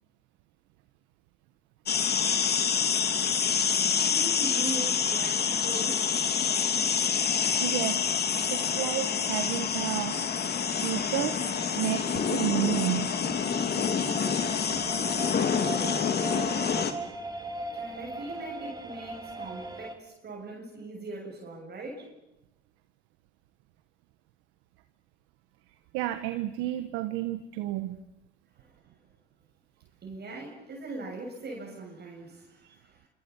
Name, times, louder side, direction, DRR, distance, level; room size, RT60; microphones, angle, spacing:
sound 1, 1.9-16.9, left 6 dB, 55° left, 3.1 m, -27 dB
sound 2, 2.8-20.0, right 2 dB, 20° right, 3.9 m, -42 dB
voice 1, 3.9-6.1 17.7-22.1 28.6-28.7 30.0-33.1, right 2 dB, 55° right, 0 dB, 7.0 m, -40 dB
voice 2, 7.6-8.0 8.5-10.2 10.8-11.4 11.8-13.1 25.9-28.0 32.6-32.7, right 14 dB, 90° right, 9 dB, 1.3 m, -31 dB
27.0 x 26.0 x 7.2 m, 0.92 s
supercardioid pair, 65°, 21 cm